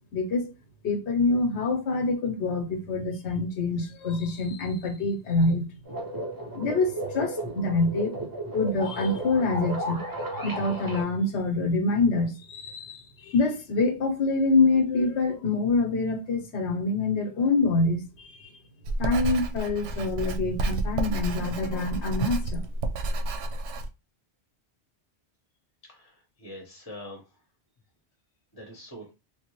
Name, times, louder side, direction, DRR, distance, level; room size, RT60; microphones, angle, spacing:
voice 1, 0.1-0.5 0.8-5.7 6.5-8.1 8.5-10.0 10.4-18.5 19.0-22.6, left 3 dB, 80° left, 1.0 m, -26 dB
sound 1, 5.9-11.0, right 1 dB, 20° right, 0.7 m, -34 dB
Writing, 18.8-23.9, right 2 dB, 90° right, 0.9 m, -30 dB
voice 2, 25.9-27.2 28.5-29.1, left 1 dB, 25° left, 0.8 m, -43 dB
3.7 x 2.0 x 2.9 m
omnidirectional pair, 1.1 m